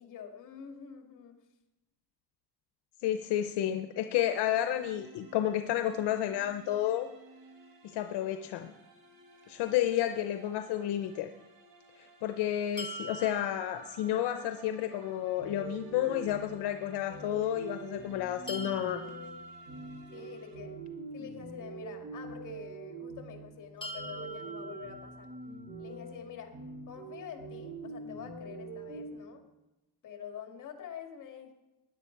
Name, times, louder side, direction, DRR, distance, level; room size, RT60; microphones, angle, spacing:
voice 1, 0.0-1.3 20.1-20.8 21.1-25.3 25.8-26.5 26.9-29.4 30.0-31.5, left 8 dB, 50° left, 3 dB, 2.5 m, -46 dB
voice 2, 3.0-7.1 7.8-8.7 9.5-11.3 12.0-19.0, left 11 dB, 80° left, 8 dB, 0.8 m, -31 dB
sound 1, 4.5-20.6, right 2 dB, 60° right, 3.7 m, -57 dB
sound 2, 12.8-14.7 18.5-20.5 23.8-25.8, equal, 10° left, 1.6 m, -45 dB
sound 3, 15.4-29.1, right 3 dB, 25° right, 6.3 m, -44 dB
17.0 x 10.5 x 4.7 m, 0.99 s
cardioid pair, 130°, 40 cm